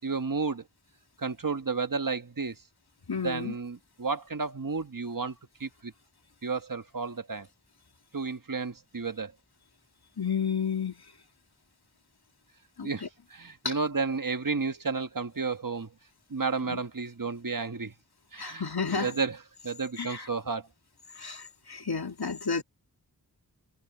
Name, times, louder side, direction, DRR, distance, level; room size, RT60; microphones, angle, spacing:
voice 1, 0.0-0.6 1.2-2.6 3.2-5.3 5.6-5.9 6.4-7.5 8.1-9.3 12.8-15.9 16.3-17.9 18.3-18.7 19.0-19.4 19.6-20.7, right 4 dB, 60° right, 1.5 m, -32 dB
voice 2, 3.1-3.5 10.2-11.0 12.8-12.9 13.6-13.8 16.7-16.8 18.4-19.1 20.0-20.3 21.2-22.6, left 5 dB, 80° left, 2.5 m, -31 dB
wide cardioid pair, 45°, 37 cm